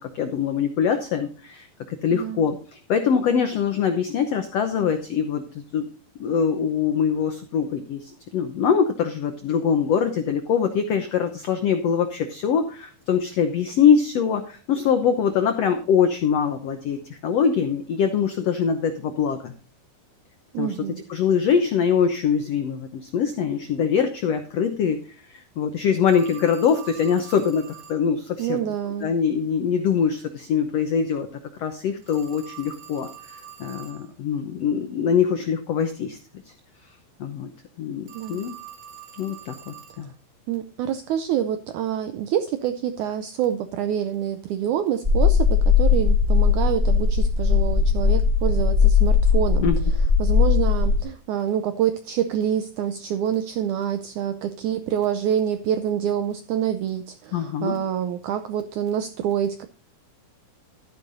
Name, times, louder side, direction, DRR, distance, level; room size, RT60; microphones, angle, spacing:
voice 1, 0.0-5.8 6.2-19.5 20.6-25.0 25.3-28.6 29.0-31.3 31.6-33.1 33.6-36.2 37.2-37.5 37.8-38.6 39.2-40.1 49.6-49.8 57.3-57.8, left 7 dB, 80° left, 6 dB, 1.4 m, -23 dB
voice 2, 2.1-2.5 20.5-21.0 28.4-29.1 38.1-38.5 40.5-49.7 50.2-59.7, right 9 dB, 85° right, 10 dB, 1.7 m, -26 dB
Telephone, 26.1-28.0 32.0-34.1 38.1-40.1, right 10 dB, 60° right, 3.0 m, -44 dB
sound 1, 45.0-51.0, left 5 dB, 15° right, 3.4 m, -19 dB
13.0 x 10.5 x 2.6 m, 0.39 s
omnidirectional pair, 4.2 m